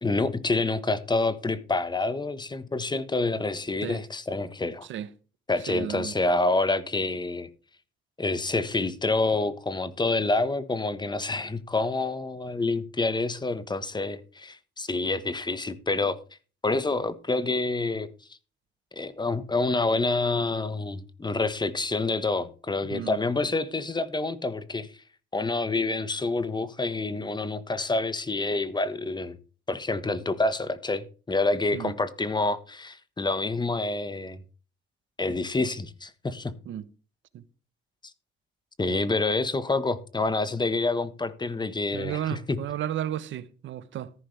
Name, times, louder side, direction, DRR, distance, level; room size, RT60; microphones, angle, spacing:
voice 1, 0.0-4.9 5.5-7.5 8.2-16.2 16.6-18.1 18.9-24.9 25.3-29.4 29.7-34.4 35.2-36.5 38.8-42.6, left 3 dB, 20° left, 1.4 m, -27 dB
voice 2, 5.7-6.1 22.8-23.2 31.7-31.9 36.7-36.9 37.3-37.4 41.9-44.1, right 11 dB, 75° right, 1.1 m, -33 dB
14.0 x 11.0 x 3.4 m
cardioid pair, 90°, 20 cm